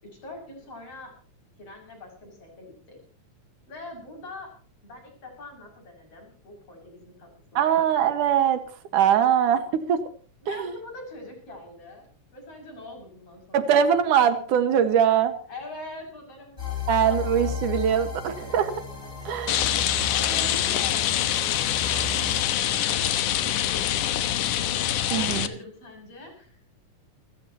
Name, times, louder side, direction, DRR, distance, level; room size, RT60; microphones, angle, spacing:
voice 1, 0.0-1.2 1.6-3.0 3.7-4.6 4.8-7.9 10.4-12.1 12.3-13.7 15.5-17.1 19.5-24.8 25.1-26.6, left 2 dB, 50° left, 2 dB, 7.6 m, -43 dB
voice 2, 7.5-8.6 8.9-10.0 10.5-10.7 13.5-15.3 16.9-18.7 19.2-19.6 25.1-25.5, right 9 dB, 80° right, 10 dB, 3.1 m, -22 dB
sound 1, 16.6-22.5, left 4 dB, 20° left, 8.1 m, -34 dB
Rain, 19.5-25.5, left 12 dB, 80° left, 2.6 m, -25 dB
29.5 x 14.5 x 2.9 m, 0.41 s
omnidirectional pair, 3.6 m